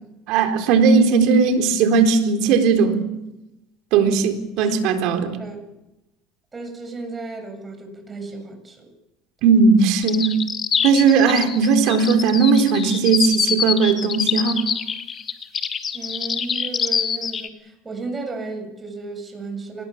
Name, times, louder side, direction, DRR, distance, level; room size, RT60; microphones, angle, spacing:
voice 1, 0.3-3.1 3.9-5.4 9.4-10.3 10.8-14.6, right 5 dB, 70° right, 6 dB, 4.0 m, -17 dB
voice 2, 6.5-8.9 15.9-19.8, right 3 dB, 25° right, 5 dB, 7.7 m, -34 dB
sound 1, 10.0-17.5, left 7 dB, 40° left, 2.3 m, -25 dB
26.5 x 20.0 x 7.3 m, 0.95 s
supercardioid pair, 85°, 0 cm